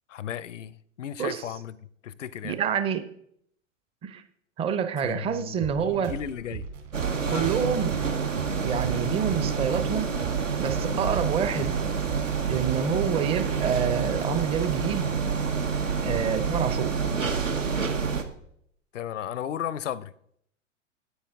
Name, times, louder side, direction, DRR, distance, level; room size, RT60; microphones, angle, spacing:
voice 1, 0.1-1.8 2.0-2.6 5.0-6.7 7.3-7.5 16.0-16.2 18.9-20.1, left 10 dB, 70° left, 0.6 m, -35 dB
voice 2, 2.4-3.1 4.0-4.2 4.6-6.1 7.3-8.2 8.6-10.1 10.6-11.9 12.5-15.1 16.0-16.9, right 7 dB, 15° right, 0.5 m, -27 dB
sound 1, 5.6-15.2, right 7 dB, 55° right, 2.5 m, -39 dB
sound 2, 6.9-18.2, right 5 dB, 80° right, 1.0 m, -28 dB
9.4 x 8.4 x 3.5 m
figure-of-eight pair, 95°, 38 cm